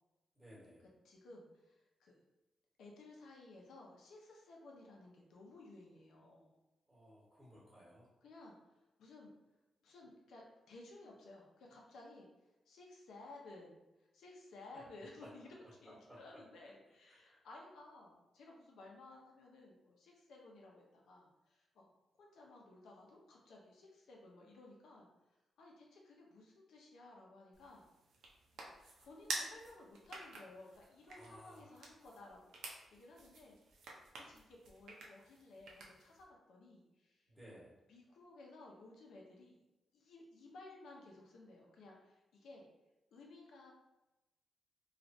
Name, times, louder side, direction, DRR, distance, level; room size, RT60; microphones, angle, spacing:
voice 1, 0.3-0.9 6.9-8.1 14.7-14.8 15.2-15.3 15.8-16.2 17.1-17.4 31.0-31.8 37.3-37.8, equal, 10° right, -9 dB, 1.1 m, -58 dB
voice 2, 1.0-2.2 2.8-6.6 8.2-8.6 9.0-9.3 9.8-12.3 12.7-13.8 14.1-15.5 15.8-21.9 22.2-25.1 25.6-27.8 28.6-33.6 33.8-37.3 37.9-39.6 39.9-42.7 43.1-43.7, left 2 dB, 85° left, -1 dB, 0.7 m, -57 dB
sound 1, 27.5-36.2, right 3 dB, 85° right, 0.6 m, -50 dB
3.1 x 2.4 x 2.6 m, 1.0 s
cardioid pair, 115°, 0 cm